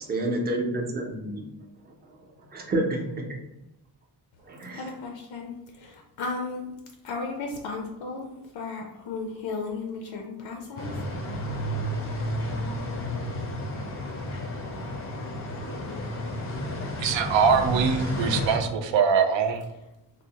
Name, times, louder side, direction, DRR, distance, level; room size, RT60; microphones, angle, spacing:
voice 1, 0.1-1.5 2.5-2.8 4.4-4.8, right 1 dB, 25° right, -1 dB, 0.5 m, -28 dB
voice 2, 4.7-6.7 7.0-10.9, left 3 dB, 85° left, 2 dB, 0.5 m, -35 dB
sound 1, 10.8-18.6, left 1 dB, 35° left, 0.4 m, -32 dB
voice 3, 17.0-19.6, right 6 dB, 80° right, 7 dB, 0.5 m, -23 dB
3.8 x 2.0 x 2.8 m, 0.91 s
wide cardioid pair, 150°, 44 cm